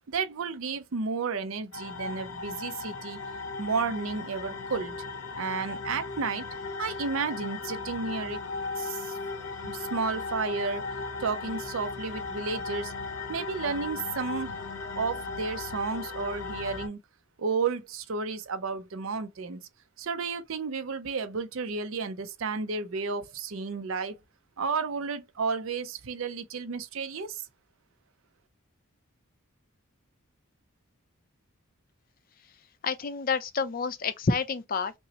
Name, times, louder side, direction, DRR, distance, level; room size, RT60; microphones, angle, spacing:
voice 1, 0.1-3.2 3.6-5.0 5.4-6.4 6.8-8.5 8.8-9.2 9.6-10.9 11.2-12.9 13.3-14.6 14.9-17.0 17.4-19.6 20.0-24.2 24.6-27.5, right 4 dB, 65° right, 0.5 m, -32 dB
sound 1, 1.7-16.9, left 4 dB, 75° left, 0.7 m, -37 dB
voice 2, 32.8-34.9, left 4 dB, 40° left, 0.4 m, -29 dB
5.3 x 2.0 x 2.8 m
head